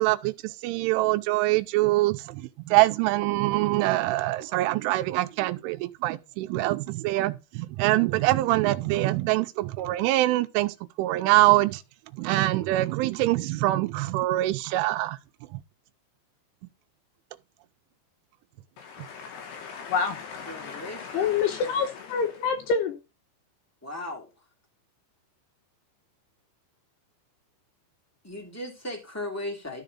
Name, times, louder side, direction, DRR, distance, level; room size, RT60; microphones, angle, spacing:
voice 1, 0.0-11.8 12.2-15.2 15.5-15.6, right 18 dB, 90° right, 3.2 m, -24 dB
voice 2, 18.8-23.0, left 5 dB, 75° left, 2.6 m, -29 dB
voice 3, 20.4-21.3 23.8-24.3 28.2-29.8, left 1 dB, 10° left, 0.9 m, -36 dB
13.0 x 5.0 x 4.0 m
omnidirectional pair, 5.5 m